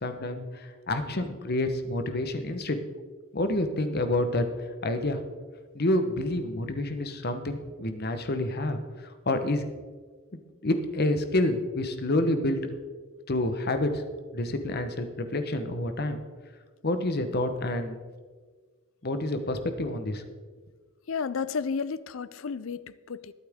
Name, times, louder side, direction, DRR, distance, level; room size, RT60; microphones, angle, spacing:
voice 1, 0.0-2.8 3.3-4.5 4.8-5.2 5.7-8.8 9.3-9.6 10.6-12.6 13.3-14.0 14.3-16.2 16.8-18.0 19.0-20.2, left 1 dB, 45° left, 1.1 m, -28 dB
voice 2, 21.1-23.3, left 5 dB, 65° left, 0.5 m, -32 dB
22.0 x 8.6 x 3.7 m
head